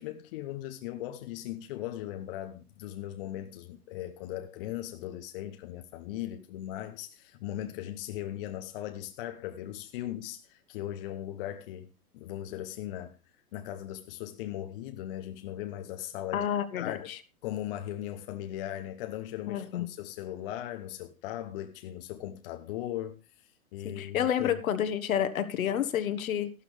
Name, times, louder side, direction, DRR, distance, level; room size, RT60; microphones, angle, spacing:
voice 1, 0.0-11.9 12.1-13.2 13.5-16.5 16.8-17.1 17.4-23.2 23.7-24.6, left 12 dB, 35° left, 0.9 m, -38 dB
voice 2, 16.3-17.2 19.5-19.9 23.8-26.5, left 9 dB, 65° left, 1.4 m, -29 dB
12.5 x 12.0 x 3.3 m
hypercardioid pair, 125°, 46 cm